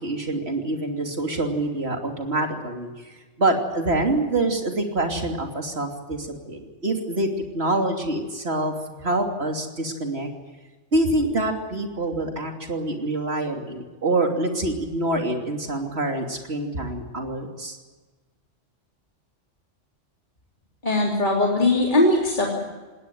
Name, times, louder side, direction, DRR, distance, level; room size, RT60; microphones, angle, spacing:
voice 1, 0.0-2.9 3.4-7.3 7.5-10.3 10.9-17.8, right 2 dB, 60° right, 3 dB, 3.2 m, -26 dB
voice 2, 20.8-22.6, left 2 dB, 40° left, -2 dB, 3.5 m, -20 dB
19.5 x 18.5 x 9.2 m, 1.3 s
omnidirectional pair, 1.2 m